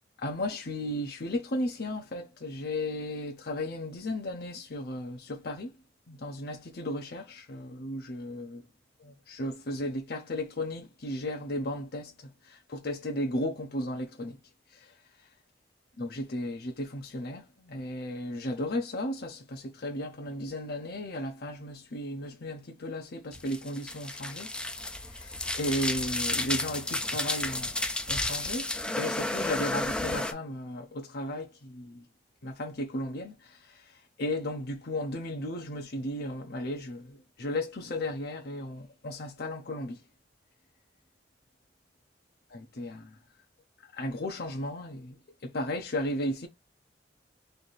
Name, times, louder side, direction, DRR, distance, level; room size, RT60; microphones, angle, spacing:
voice 1, 0.2-5.7 6.1-8.6 9.0-14.4 14.7-14.9 16.0-24.5 25.0-27.7 28.1-32.0 32.4-40.0 42.5-43.2 43.9-45.2 45.4-46.5, left 1 dB, 60° left, 0.7 m, -35 dB
sound 1, 23.3-30.3, left 2 dB, 5° left, 0.4 m, -32 dB
3.3 x 2.7 x 4.0 m
head